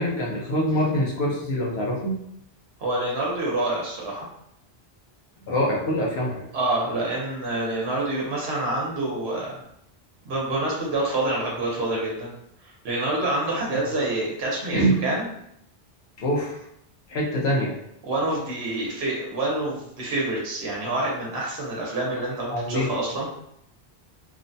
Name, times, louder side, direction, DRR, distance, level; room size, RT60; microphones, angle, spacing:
voice 1, 0.0-2.2 5.5-6.5 14.7-15.0 16.2-16.5 17.1-17.7 22.5-22.9, equal, 85° left, -3 dB, 1.0 m, -24 dB
voice 2, 2.8-4.3 6.5-9.6 10.2-12.3 12.6-15.2 18.0-23.4, right 2 dB, 80° right, -3 dB, 1.0 m, -27 dB
3.0 x 2.1 x 2.6 m, 0.75 s
omnidirectional pair, 1.0 m